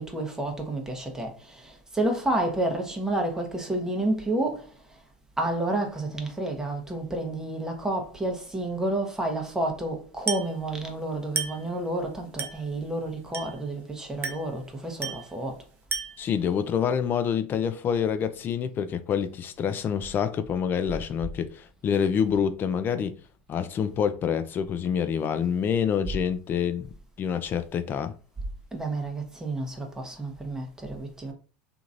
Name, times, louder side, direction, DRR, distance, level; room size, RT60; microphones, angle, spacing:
voice 1, 0.0-5.0 5.4-15.6 28.7-31.3, right 1 dB, 10° right, 0.9 m, -30 dB
Glass, 10.3-10.6 11.4-11.7 12.4-12.7 13.3-13.7 14.2-14.6 15.0-15.3 15.9-16.3, right 6 dB, 35° right, 0.8 m, -33 dB
voice 2, 16.2-23.1 23.5-28.1, left 7 dB, 35° left, 0.4 m, -27 dB
2.9 x 2.6 x 2.5 m
hypercardioid pair, 100°, 6 cm